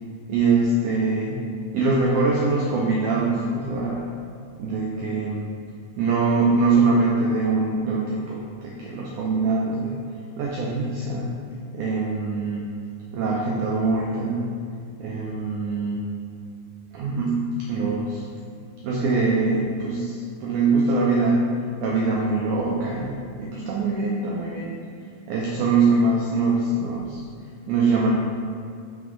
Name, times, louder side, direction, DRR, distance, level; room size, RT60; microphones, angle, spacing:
voice 1, 0.3-1.4 1.7-4.0 4.6-5.5 6.0-9.9 10.4-11.3 11.7-12.7 13.1-14.5 15.0-16.1 16.9-18.3 18.8-21.5 21.8-24.7 25.3-27.2 27.7-28.1, right 3 dB, 85° right, -3 dB, 1.7 m, -23 dB
5.9 x 4.0 x 4.6 m, 2.4 s
omnidirectional pair, 4.2 m